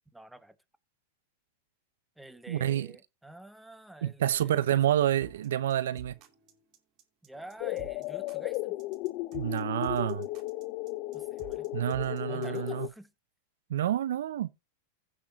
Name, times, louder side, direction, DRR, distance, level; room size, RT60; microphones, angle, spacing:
voice 1, 0.1-0.6 2.2-4.6 7.2-8.8 11.1-11.7 12.2-13.1, right 1 dB, 5° right, 1.0 m, -48 dB
voice 2, 2.5-2.9 4.0-6.2 9.3-10.3 11.7-12.9 13.7-14.5, right 11 dB, 80° right, 0.6 m, -28 dB
sound 1, 5.2-12.7, right 8 dB, 45° right, 2.5 m, -53 dB
sound 2, 7.6-12.9, left 20 dB, 50° left, 0.4 m, -35 dB
16.0 x 6.1 x 2.7 m
hypercardioid pair, 125°, 0 cm